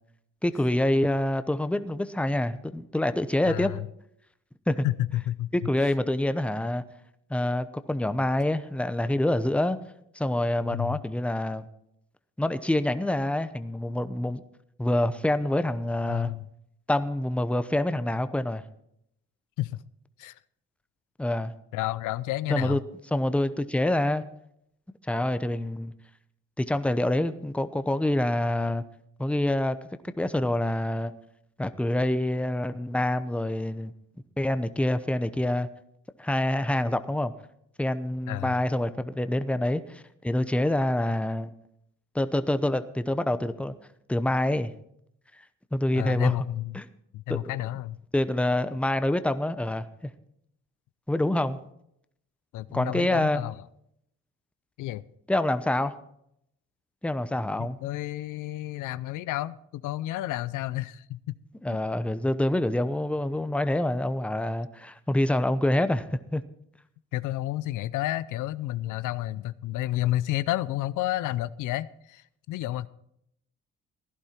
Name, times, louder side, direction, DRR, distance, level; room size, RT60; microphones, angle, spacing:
voice 1, 0.4-3.7 4.7-4.9 5.5-6.8 7.3-9.8 10.1-11.7 12.4-14.4 14.8-16.3 16.9-18.6 21.2-21.5 22.5-22.8 23.1-24.2 25.1-25.9 26.6-28.8 29.2-29.8 30.0-31.1 31.6-33.9 34.4-35.7 36.2-37.3 37.8-41.5 42.1-43.7 44.1-44.7 45.7-46.3 46.7-46.9 47.3-47.4 48.1-50.1 51.1-51.6 52.7-53.4 55.3-55.9 57.0-57.8 61.6-66.4, left 1 dB, 5° left, 12 dB, 0.8 m, -26 dB
voice 2, 3.4-3.8 4.8-5.5 10.7-11.0 16.1-16.5 19.6-19.8 20.2-20.4 21.7-22.8 38.3-38.5 45.9-46.8 47.1-48.0 52.5-53.5 54.8-55.0 57.6-61.3 61.7-61.8 67.1-72.9, left 15 dB, 85° left, 17 dB, 0.6 m, -31 dB
15.5 x 11.5 x 4.5 m, 0.75 s
cardioid pair, 90°, 30 cm